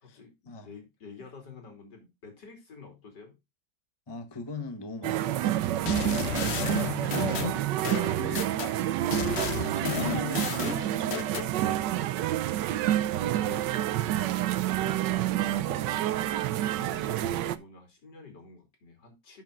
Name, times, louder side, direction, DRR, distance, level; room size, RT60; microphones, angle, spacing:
voice 1, 0.0-3.4 5.8-7.7 12.6-19.4, left 4 dB, 75° left, 3.6 m, -49 dB
voice 2, 4.1-6.1 7.8-8.5 9.3-11.9 16.8-17.0, left 3 dB, 15° left, 1.0 m, -41 dB
sound 1, 5.0-17.6, right 13 dB, 90° right, 1.3 m, -28 dB
sound 2, 5.9-8.7 9.1-11.5, left 8 dB, 55° left, 0.8 m, -32 dB
11.5 x 6.2 x 2.5 m
omnidirectional pair, 1.8 m